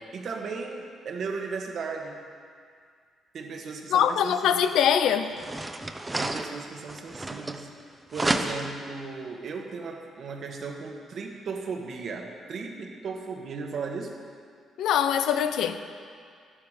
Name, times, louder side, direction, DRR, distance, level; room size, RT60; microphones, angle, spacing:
voice 1, 0.0-2.2 3.3-4.6 6.2-7.7 8.1-14.2, right 4 dB, 60° right, 1.5 m, -36 dB
voice 2, 3.9-5.3 14.8-15.8, left 9 dB, 80° left, 0.6 m, -23 dB
sound 1, 4.6-4.7 5.3-7.8 8.1-8.9, right 2 dB, 15° right, 0.8 m, -31 dB
12.5 x 11.5 x 5.0 m
cardioid pair, 90°, 0 cm